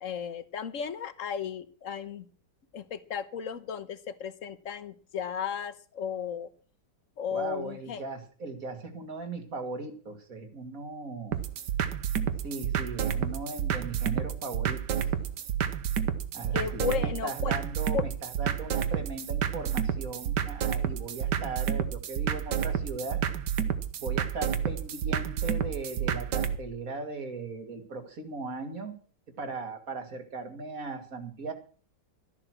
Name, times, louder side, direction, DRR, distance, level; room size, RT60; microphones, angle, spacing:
voice 1, 0.0-2.2 2.7-6.5 7.2-8.0 16.5-17.6 17.9-18.0, left 8 dB, 55° left, 14 dB, 1.2 m, -34 dB
voice 2, 7.3-11.4 12.4-15.0 16.3-23.2 24.0-28.9 29.4-31.5, right 3 dB, 50° right, 7 dB, 2.4 m, -38 dB
sound 1, 11.3-26.6, right 9 dB, 75° right, 1.7 m, -30 dB
13.5 x 11.0 x 6.1 m, 0.41 s
omnidirectional pair, 1.9 m